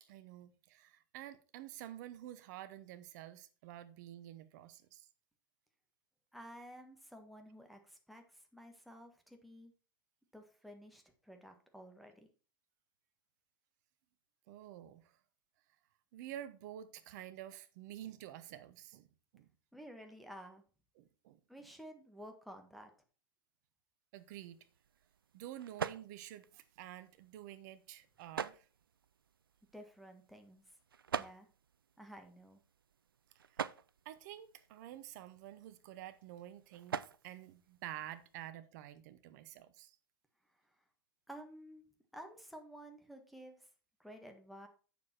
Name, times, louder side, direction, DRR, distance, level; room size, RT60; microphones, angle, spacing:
voice 1, 0.0-5.1 14.5-15.2 16.1-19.5 21.0-21.4 24.1-24.6 25.3-28.7 33.5-33.7 34.0-40.0, right 12 dB, 55° right, 0.9 m, -50 dB
voice 2, 6.3-9.7 10.3-12.3 19.7-20.6 21.5-22.9 29.7-30.6 31.1-31.5 32.0-32.6 41.3-41.8 42.1-43.7 44.0-44.7, equal, ahead, 1.6 m, -53 dB
sound 1, 24.2-38.5, right 7 dB, 80° right, 0.4 m, -47 dB
8.3 x 7.0 x 4.4 m
figure-of-eight pair, 90°, 12 cm